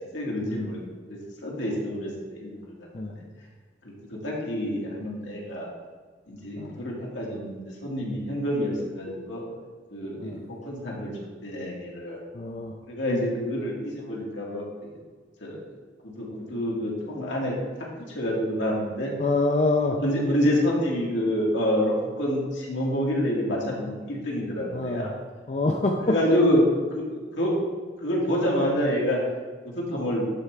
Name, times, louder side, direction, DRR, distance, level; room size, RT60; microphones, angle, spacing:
voice 1, 0.1-0.8 1.1-2.6 3.1-3.2 4.1-5.7 6.3-9.4 9.9-10.3 10.6-11.1 11.4-12.2 12.9-14.6 15.4-15.6 16.0-17.5 18.1-19.1 20.0-25.1 26.0-26.6 26.9-27.5 28.0-29.2 29.6-30.3, equal, 85° left, -3 dB, 2.1 m, -27 dB
voice 2, 12.3-12.7 19.2-20.0 24.7-25.1 25.5-26.2, left 2 dB, 40° left, 2 dB, 0.5 m, -26 dB
11.0 x 4.8 x 3.3 m, 1.5 s
head